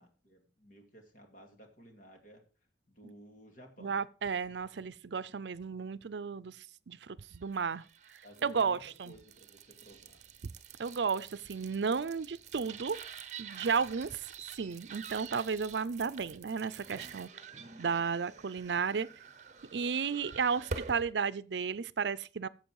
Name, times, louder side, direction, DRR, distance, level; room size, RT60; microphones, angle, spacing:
voice 1, 0.0-2.4 2.9-4.0 8.2-10.2, right 1 dB, 50° left, 2.5 m, -55 dB
voice 2, 3.8-6.6 6.9-7.8 8.4-9.1 10.8-13.0 13.4-14.3 14.5-17.3 17.8-19.1 19.7-22.5, right 5 dB, 80° right, 0.5 m, -33 dB
sound 1, 7.5-21.1, right 5 dB, 40° right, 0.8 m, -47 dB
14.5 x 7.5 x 4.7 m
head